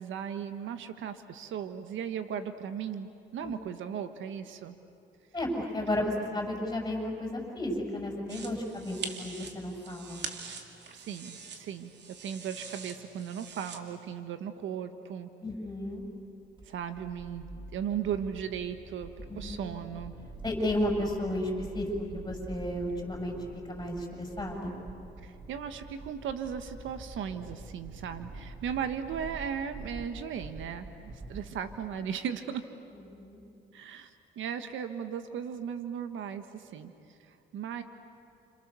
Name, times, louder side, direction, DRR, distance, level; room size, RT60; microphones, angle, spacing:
voice 1, 0.0-4.8 10.9-11.9 12.2-15.3 16.6-20.2 25.2-32.7 33.7-36.9 37.2-37.8, right 8 dB, 80° right, 9 dB, 1.5 m, -37 dB
voice 2, 5.3-10.2 15.4-16.0 19.3-19.6 20.4-21.9 22.1-23.4 23.7-24.7 31.3-31.5 32.9-33.5, left 1 dB, 20° left, 0 dB, 7.7 m, -33 dB
Set KIlled, 8.3-13.8, right 5 dB, 60° right, 2.8 m, -44 dB
sound 1, 16.0-32.0, right 2 dB, 25° right, 2.5 m, -46 dB
30.0 x 28.0 x 7.0 m, 2.7 s
cardioid pair, 90°, 20 cm